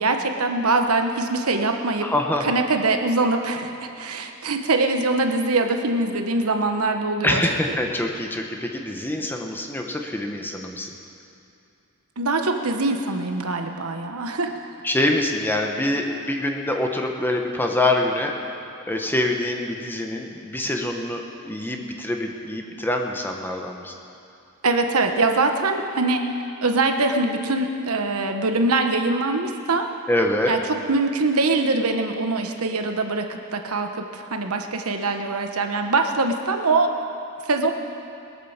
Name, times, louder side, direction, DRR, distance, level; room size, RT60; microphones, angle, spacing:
voice 1, 0.0-2.1 2.4-7.4 12.2-14.5 24.6-26.2 26.6-29.9 30.5-30.6 30.9-36.9 37.4-37.7, right 3 dB, 80° right, 5 dB, 1.3 m, -23 dB
voice 2, 2.0-2.5 7.2-10.9 14.8-18.5 18.9-23.9 30.1-30.5, left 1 dB, 10° left, 2 dB, 1.1 m, -25 dB
21.5 x 8.6 x 7.3 m, 2.7 s
head